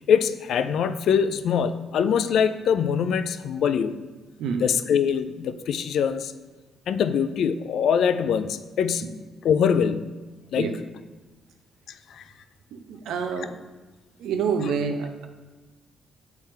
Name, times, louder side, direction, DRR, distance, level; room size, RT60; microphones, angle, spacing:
voice 1, 0.1-3.9 4.6-6.3 6.9-9.1 9.4-10.1 10.5-10.8 12.2-12.3, left 7 dB, 70° left, 11 dB, 0.4 m, -23 dB
voice 2, 12.7-13.5 14.2-15.3, right 6 dB, 85° right, 5 dB, 0.7 m, -27 dB
7.3 x 3.5 x 4.4 m, 1.2 s
cardioid pair, 90°, 0 cm